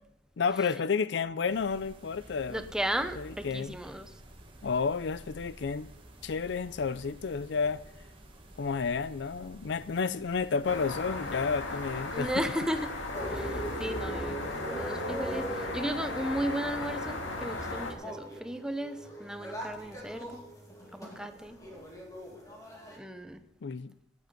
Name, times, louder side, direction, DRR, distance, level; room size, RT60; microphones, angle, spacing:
voice 1, 0.4-2.7 3.2-3.8 4.6-5.9 6.2-7.8 8.6-12.5 23.6-23.9, left 5 dB, 65° left, 0.4 m, -31 dB
sound 1, 1.4-13.9, right 1 dB, 30° right, 1.8 m, -52 dB
voice 2, 2.5-4.1 12.1-12.9 13.3-20.4 20.9-21.6 23.0-23.4, right 1 dB, 5° right, 0.8 m, -35 dB
sound 2, 10.6-17.9, left 2 dB, 85° left, 2.0 m, -37 dB
sound 3, 13.1-23.0, equal, 15° left, 2.5 m, -40 dB
9.5 x 9.5 x 9.1 m
head